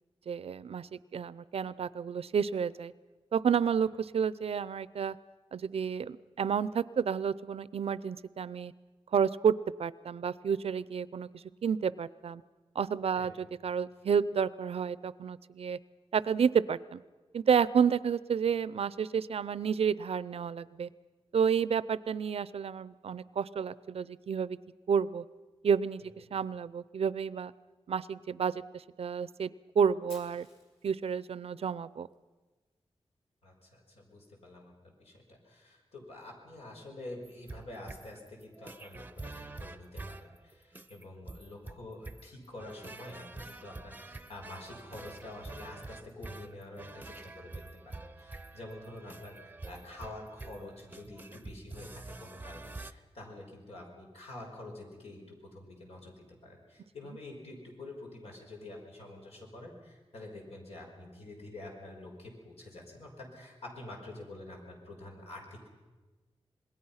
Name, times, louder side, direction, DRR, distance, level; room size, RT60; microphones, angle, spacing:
voice 1, 0.3-2.9 3.3-5.2 5.5-8.7 9.1-9.5 9.8-12.4 12.7-15.8 16.1-17.0 17.3-20.9 21.3-24.6 24.9-25.2 25.6-26.0 26.3-27.5 27.9-29.5 29.8-30.5 30.8-32.1, right 7 dB, 80° right, 18 dB, 0.6 m, -30 dB
Fire, 30.1-32.1, left 2 dB, 65° left, 5.2 m, -57 dB
voice 2, 33.4-65.7, left 2 dB, 90° left, 0 dB, 5.4 m, -47 dB
sound 1, 37.2-52.9, right 2 dB, 15° right, 0.6 m, -46 dB
26.5 x 21.0 x 5.7 m, 1.3 s
wide cardioid pair, 145°, 10 cm